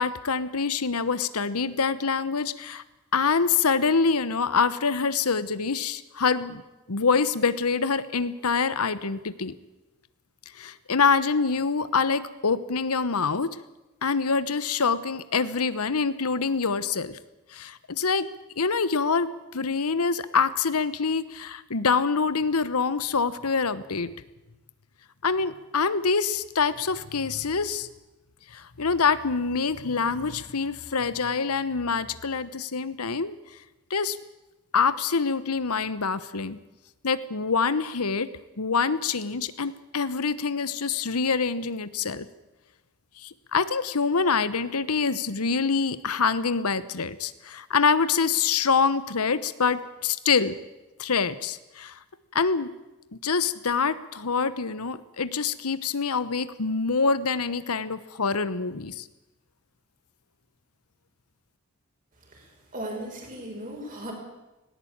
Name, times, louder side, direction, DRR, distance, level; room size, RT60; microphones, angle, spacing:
voice 1, 0.0-2.8 3.1-6.6 6.9-9.5 10.5-13.6 14.0-17.2 17.5-18.3 18.6-24.1 25.2-27.9 28.5-33.4 33.9-34.2 34.7-36.6 37.0-38.3 38.6-42.3 43.2-50.6 51.0-52.0 52.3-52.7 53.1-59.1, left 5 dB, 90° left, 14 dB, 1.1 m, -25 dB
voice 2, 62.3-64.1, right 1 dB, 40° right, 0 dB, 6.5 m, -37 dB
18.5 x 18.0 x 8.8 m, 1.0 s
head